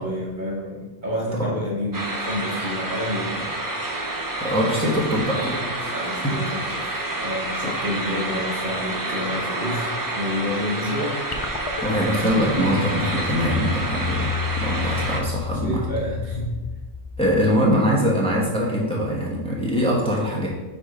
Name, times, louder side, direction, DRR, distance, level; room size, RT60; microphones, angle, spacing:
voice 1, 0.0-3.5 5.9-11.2 15.6-16.5, left 1 dB, 45° right, -3 dB, 1.1 m, -29 dB
sound 1, 1.9-15.2, right 2 dB, 25° right, 0.5 m, -29 dB
voice 2, 4.4-5.9 6.2-6.3 6.8-7.0 7.6-7.8 11.8-15.8 17.2-20.5, equal, 5° left, -4 dB, 1.0 m, -23 dB
sound 2, 11.3-17.8, left 6 dB, 50° left, 0.4 m, -31 dB
4.9 x 4.1 x 4.9 m, 1.2 s
omnidirectional pair, 1.2 m